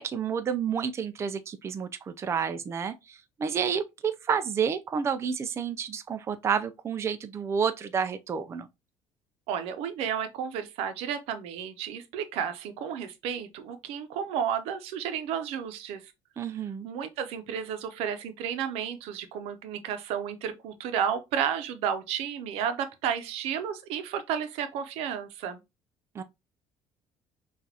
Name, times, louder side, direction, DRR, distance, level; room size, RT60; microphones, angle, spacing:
voice 1, 0.0-8.7 16.4-16.9 26.1-26.2, right 7 dB, 25° right, 0.4 m, -30 dB
voice 2, 9.5-16.1 16.8-25.6, right 8 dB, 80° right, 0.7 m, -32 dB
5.9 x 2.5 x 2.8 m
cardioid pair, 125°, 10 cm